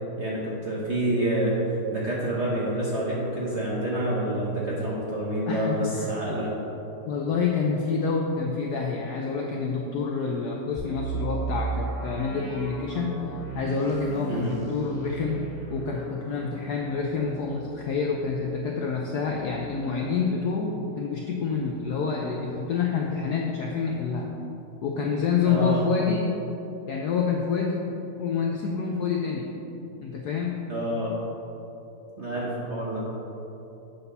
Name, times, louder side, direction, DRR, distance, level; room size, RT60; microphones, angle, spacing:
voice 1, 0.2-1.6 1.9-6.5 14.3-14.5 25.4-25.8 30.7-31.1 32.2-33.0, right 1 dB, 50° right, -6 dB, 0.8 m, -28 dB
voice 2, 5.5-6.1 7.1-13.1 13.5-15.4 15.7-24.3 24.8-26.3 26.9-27.8 28.2-29.5 30.0-30.6, left 5 dB, 75° left, 0 dB, 0.9 m, -27 dB
sound 1, 10.8-20.5 20.8-20.9 21.4-21.7, right 4 dB, 30° left, 1.7 m, -36 dB
8.2 x 4.2 x 5.4 m, 3.0 s
omnidirectional pair, 2.4 m